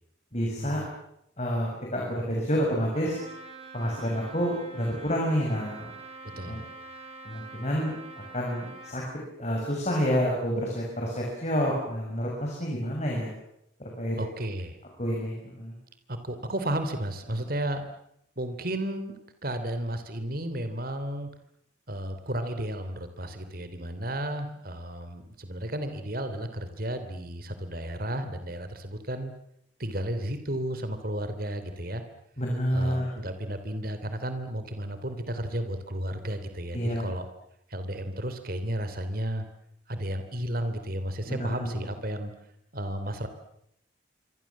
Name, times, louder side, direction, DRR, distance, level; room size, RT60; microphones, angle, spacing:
voice 1, 0.3-0.8 1.4-3.2 3.7-5.9 6.3-6.6 7.3-7.9 8.3-9.0 9.4-13.3 13.8-14.2 15.0-15.7 32.4-33.1 36.7-37.1 41.3-41.9, equal, 35° left, -2 dB, 7.0 m, -29 dB
Trumpet, 2.9-9.0, right 3 dB, 30° right, 6.8 m, -45 dB
voice 2, 14.2-14.8 16.1-17.9 18.4-19.1 19.4-21.3 21.9-29.3 29.8-32.0 32.7-37.3 37.7-39.4 39.9-42.3 42.7-43.3, right 1 dB, 50° right, 9 dB, 3.1 m, -33 dB
26.5 x 25.5 x 7.4 m, 0.76 s
head